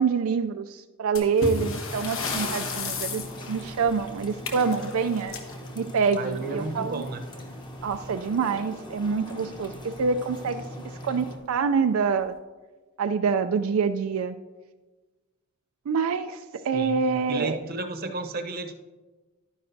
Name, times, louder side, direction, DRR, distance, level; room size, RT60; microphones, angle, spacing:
voice 1, 0.0-5.4 5.8-7.0 7.8-10.6 11.0-12.4 13.0-14.4 15.9-17.6, right 5 dB, 85° right, 9 dB, 0.4 m, -26 dB
sound 1, 1.2-6.5 7.8-8.0 8.3-8.4 9.0-9.1 9.8-10.1, left 3 dB, 75° left, 1.2 m, -34 dB
sound 2, 1.7-11.4, equal, 20° left, 1.0 m, -41 dB
voice 2, 6.1-7.2 16.7-18.8, right 3 dB, 45° right, 5 dB, 0.8 m, -33 dB
11.0 x 10.0 x 2.7 m, 1.2 s
head